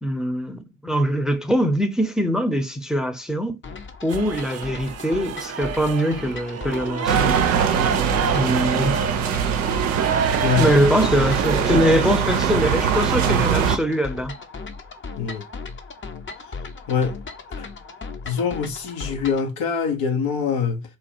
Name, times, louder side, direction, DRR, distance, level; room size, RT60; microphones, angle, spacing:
voice 1, 0.0-3.6 4.0-7.5 8.3-9.0 10.5-14.3, equal, ahead, 0.7 m, -22 dB
sound 1, 3.6-19.5, left 4 dB, 30° left, 0.7 m, -37 dB
sound 2, 4.1-12.4, right 7 dB, 40° right, 0.5 m, -28 dB
sound 3, 7.1-13.8, right 7 dB, 90° right, 0.5 m, -22 dB
voice 2, 16.9-17.2 17.6-17.7 18.2-20.8, left 6 dB, 70° left, 0.9 m, -24 dB
3.3 x 2.3 x 4.3 m
hypercardioid pair, 40°, 37 cm